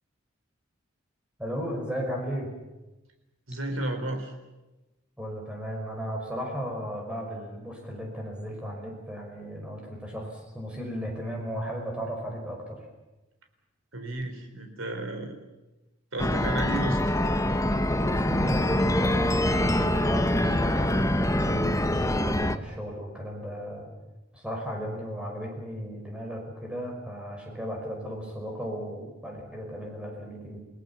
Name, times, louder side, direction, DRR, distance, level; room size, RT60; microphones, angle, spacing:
voice 1, 1.4-2.5 5.2-12.8 17.9-23.9 24.3-30.6, equal, 5° right, 0 dB, 5.4 m, -35 dB
voice 2, 3.5-4.3 13.9-15.4 16.1-17.0, right 1 dB, 80° right, 6 dB, 4.2 m, -32 dB
sound 1, 16.2-22.6, left 1 dB, 15° left, 0.8 m, -25 dB
28.5 x 18.5 x 7.3 m, 1.0 s
head